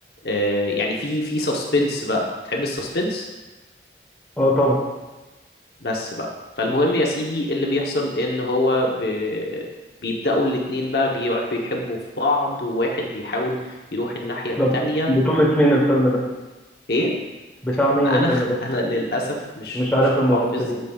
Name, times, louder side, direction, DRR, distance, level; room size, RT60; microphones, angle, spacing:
voice 1, 0.2-3.3 5.8-6.3 6.6-9.7 10.0-15.1 16.9-17.2 18.0-20.6, left 1 dB, 65° left, 0 dB, 0.9 m, -24 dB
voice 2, 4.4-4.8 14.6-14.7 15.1-16.2 17.6-18.5 19.7-20.8, equal, 10° left, -4 dB, 1.1 m, -19 dB
9.0 x 6.5 x 2.3 m, 1.1 s
head